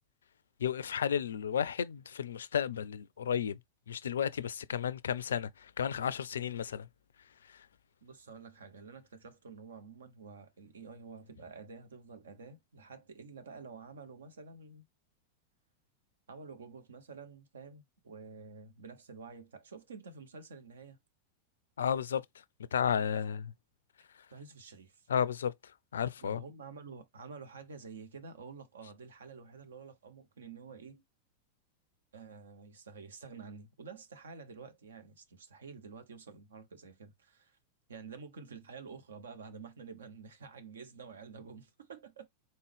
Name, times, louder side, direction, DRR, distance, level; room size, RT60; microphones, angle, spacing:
voice 1, 0.6-3.6 3.9-6.9 21.8-22.2 22.7-23.5 25.1-25.5 25.9-26.4, left 8 dB, 65° left, 0.3 m, -32 dB
voice 2, 8.0-14.8 16.3-21.0 24.3-25.1 26.2-31.0 32.1-37.6 37.9-42.3, right 5 dB, 65° right, 0.9 m, -49 dB
4.1 x 3.6 x 3.4 m
figure-of-eight pair, 90°, 0 cm